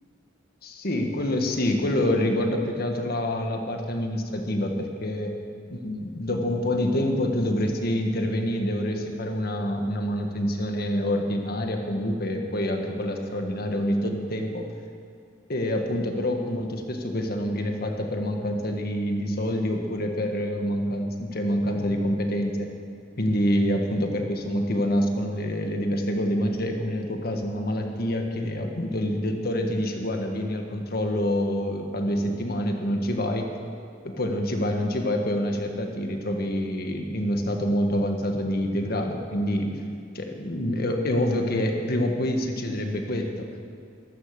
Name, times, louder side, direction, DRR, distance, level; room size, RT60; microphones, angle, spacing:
voice 1, 0.6-5.3 5.7-14.7 15.5-22.7 23.2-33.5 34.0-39.7 40.1-43.5, left 1 dB, 55° left, 3 dB, 1.5 m, -26 dB
14.0 x 13.0 x 6.7 m, 2.4 s
head